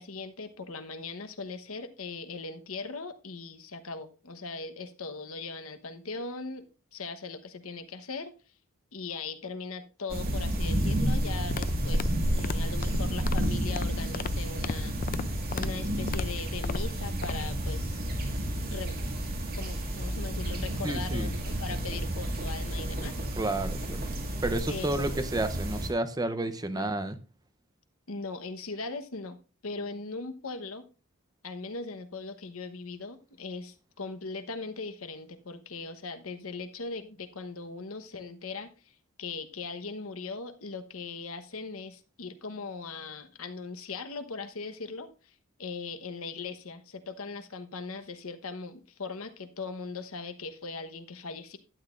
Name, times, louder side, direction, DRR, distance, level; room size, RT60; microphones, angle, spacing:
voice 1, 0.0-8.3 8.9-14.9 15.5-18.0 18.7-19.0 19.5-23.2 24.7-25.3 26.7-27.0 28.1-29.4 29.6-30.8 31.4-38.7 39.2-45.1 45.6-51.6, left 4 dB, 80° left, 1.1 m, -39 dB
sound 1, 10.1-25.9, right 1 dB, 45° right, 2.2 m, -31 dB
sound 2, 11.4-17.3, left 4 dB, 40° left, 0.5 m, -36 dB
voice 2, 20.8-21.3 23.4-24.0 24.4-27.2, right 2 dB, 20° right, 0.7 m, -31 dB
12.0 x 9.6 x 2.5 m
head